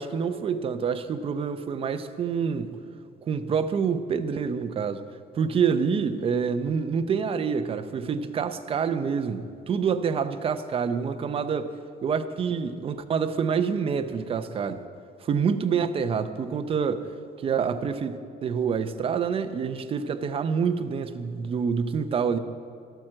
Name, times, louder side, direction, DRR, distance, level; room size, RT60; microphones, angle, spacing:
voice 1, 0.0-2.8 3.3-5.0 5.3-11.7 12.0-14.8 15.2-17.1 17.4-22.4, right 6 dB, 30° right, 9 dB, 0.6 m, -27 dB
12.0 x 9.1 x 7.6 m, 2.4 s
cardioid pair, 165°, 18 cm